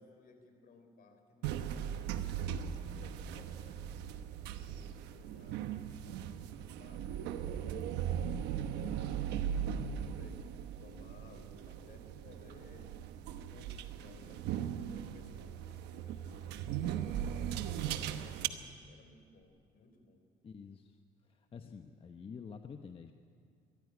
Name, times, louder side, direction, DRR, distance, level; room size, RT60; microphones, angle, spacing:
voice 1, 0.0-2.6 3.0-4.1 4.6-7.1 7.6-12.9 13.5-20.2, left 3 dB, 60° left, 6 dB, 4.0 m, -61 dB
sound 1, 1.4-18.5, right 9 dB, 90° right, 1.1 m, -39 dB
voice 2, 20.4-23.1, left 6 dB, 35° left, 6 dB, 1.0 m, -49 dB
23.0 x 15.0 x 9.7 m, 2.4 s
cardioid pair, 110°, 17 cm